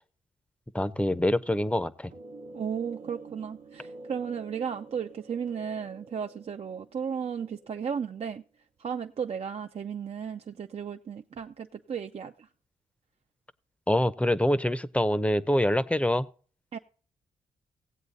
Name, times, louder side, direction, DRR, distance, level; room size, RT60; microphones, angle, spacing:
voice 1, 0.7-2.1 13.9-16.3, left 1 dB, 10° left, 0.7 m, -25 dB
sound 1, 2.1-8.2, right 3 dB, 70° right, 1.0 m, -48 dB
voice 2, 2.5-8.4 8.8-12.5 16.7-16.8, right 7 dB, 50° right, 0.6 m, -34 dB
16.5 x 8.0 x 4.1 m
cardioid pair, 65°, 14 cm